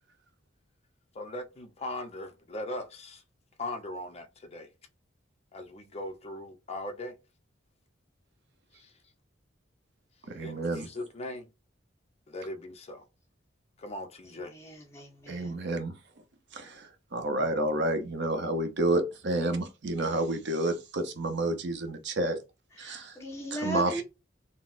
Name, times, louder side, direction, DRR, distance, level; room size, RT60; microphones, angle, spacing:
voice 1, 1.1-3.2 3.6-4.7 5.5-7.2 8.7-9.0 10.4-11.5 12.3-13.1 13.8-14.5, left 1 dB, 35° left, 0.6 m, -39 dB
voice 2, 10.3-10.9 15.3-15.9 16.5-22.4 22.8-23.2 23.5-24.0, right 2 dB, 65° right, 0.7 m, -30 dB
voice 3, 14.2-15.6 22.7-24.0, right 1 dB, 15° left, 1.3 m, -38 dB
3.9 x 2.0 x 2.4 m
head